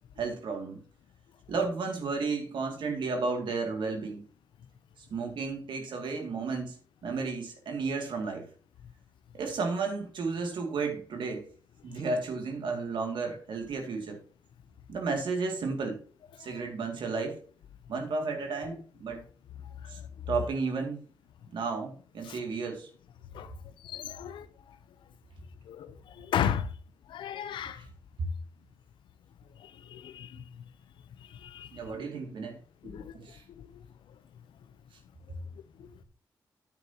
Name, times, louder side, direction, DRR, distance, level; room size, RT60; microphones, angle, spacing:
voice 1, 0.2-0.8 1.5-4.2 5.1-6.8 7.0-8.5 9.3-11.5 11.8-14.2 14.9-16.0 16.4-17.4 17.9-19.2 19.9-20.0 20.3-21.0 21.5-22.9 27.8-27.9 28.2-28.3 31.7-32.6 32.8-33.4, right 4 dB, 80° right, 2.2 m, -33 dB
voice 2, 23.9-24.5 25.7-25.9 26.2-26.7 27.1-27.8 29.9-30.3 31.5-31.7 32.8-33.0, left 9 dB, 90° left, 0.6 m, -32 dB
9.5 x 9.1 x 2.8 m
cardioid pair, 55°, 8 cm